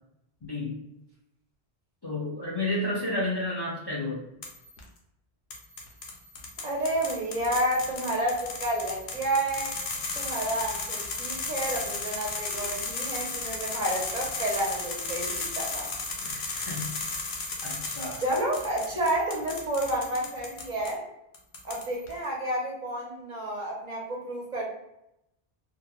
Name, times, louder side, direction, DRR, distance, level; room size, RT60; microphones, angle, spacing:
voice 1, 0.4-0.8 2.0-4.2 16.2-16.9 17.6-18.2, left 2 dB, 35° left, -6 dB, 0.4 m, -31 dB
sound 1, 4.4-4.8 5.5-20.9 21.3-22.1, left 3 dB, 80° left, 0.9 m, -35 dB
voice 2, 6.6-9.7 10.1-15.9 18.2-21.0 21.6-24.6, right 1 dB, 50° right, -2 dB, 0.7 m, -30 dB
2.4 x 2.0 x 2.9 m, 0.84 s
omnidirectional pair, 1.1 m